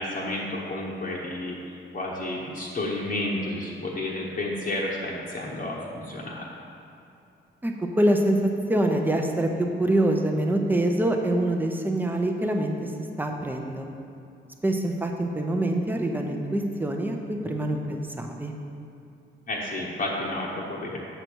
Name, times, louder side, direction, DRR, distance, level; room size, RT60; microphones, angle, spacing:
voice 1, 0.0-1.6 1.9-6.5 19.5-21.0, left 1 dB, 45° left, -5 dB, 1.0 m, -31 dB
voice 2, 7.6-8.4 8.7-12.9 13.2-13.9 14.6-18.5, right 1 dB, 10° right, 2 dB, 0.7 m, -25 dB
7.5 x 6.7 x 4.5 m, 2.7 s
wide cardioid pair, 140°, 20 cm